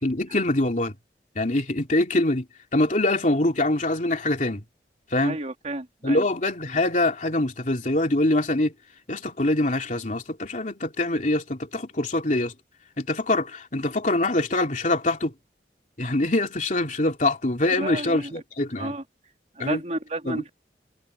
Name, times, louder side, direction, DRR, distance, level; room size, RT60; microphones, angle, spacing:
voice 1, 0.0-0.9 1.3-2.5 2.7-4.6 5.1-5.4 6.0-8.7 9.1-12.5 13.0-15.3 16.0-18.9 19.6-19.8 20.2-20.5, left 2 dB, 45° left, 3.1 m, -24 dB
voice 2, 5.2-6.2 17.8-18.3 18.8-19.0 19.6-20.5, right 1 dB, 40° right, 3.4 m, -31 dB
head